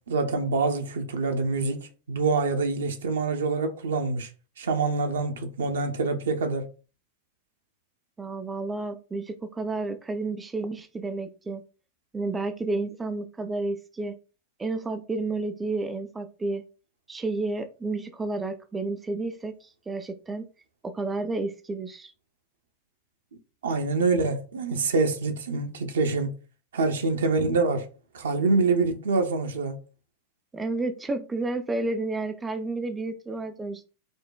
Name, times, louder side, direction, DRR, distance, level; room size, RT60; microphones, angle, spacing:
voice 1, 0.1-4.3 4.6-6.6 23.6-26.3 26.7-27.9 28.1-29.8, right 3 dB, 65° right, 0.5 m, -25 dB
voice 2, 8.2-11.6 12.1-14.2 14.6-16.6 17.1-20.5 20.8-22.1 30.5-33.8, right 3 dB, 15° right, 0.3 m, -31 dB
5.1 x 2.1 x 2.2 m
figure-of-eight pair, 90°, 0 cm